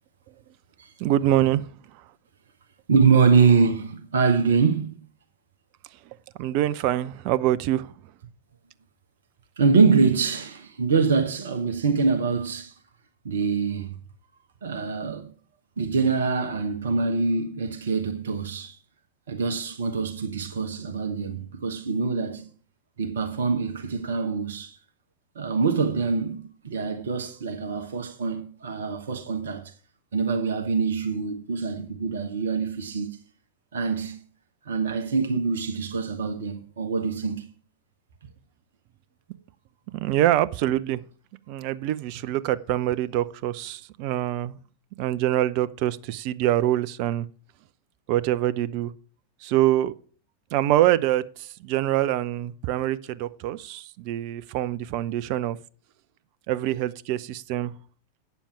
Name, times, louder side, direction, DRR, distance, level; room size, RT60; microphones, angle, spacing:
voice 1, 1.0-1.7 6.4-7.9 39.9-41.0 41.5-44.6 45.0-47.3 48.1-48.9 49.4-49.9 50.5-55.6 56.5-57.7, right 13 dB, 45° right, 0.5 m, -25 dB
voice 2, 2.9-5.0 9.6-12.7 13.2-13.9 14.6-15.3 15.8-18.8 19.3-22.5 23.0-24.8 25.3-29.7 30.1-33.1 33.7-34.2 34.7-37.5, right 5 dB, 65° right, 1.2 m, -24 dB
8.8 x 7.1 x 5.8 m
figure-of-eight pair, 90°, 0 cm